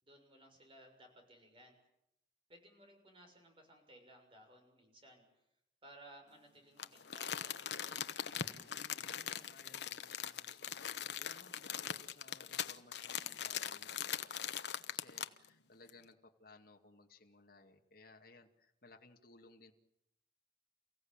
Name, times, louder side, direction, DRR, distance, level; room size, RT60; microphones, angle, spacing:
voice 1, 0.0-1.7 2.5-5.4 5.8-8.1, right 1 dB, 30° right, 4 dB, 6.7 m, -60 dB
Crumpling crinkling, 6.8-15.5 15.9-16.0, left 9 dB, 75° left, 1.1 m, -41 dB
voice 2, 8.5-19.7, left 3 dB, 55° left, 3 dB, 2.3 m, -61 dB
29.5 x 16.0 x 9.0 m, 0.82 s
head